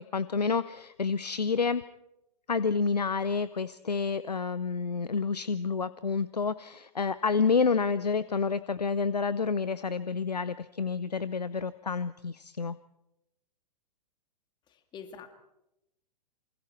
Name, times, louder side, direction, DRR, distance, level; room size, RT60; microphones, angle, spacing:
voice 1, 0.0-1.8 2.5-12.8, left 5 dB, 85° left, 16 dB, 0.7 m, -29 dB
voice 2, 14.7-15.3, left 6 dB, 20° left, 7 dB, 2.1 m, -45 dB
27.0 x 25.5 x 4.5 m, 0.88 s
figure-of-eight pair, 110°, 20 cm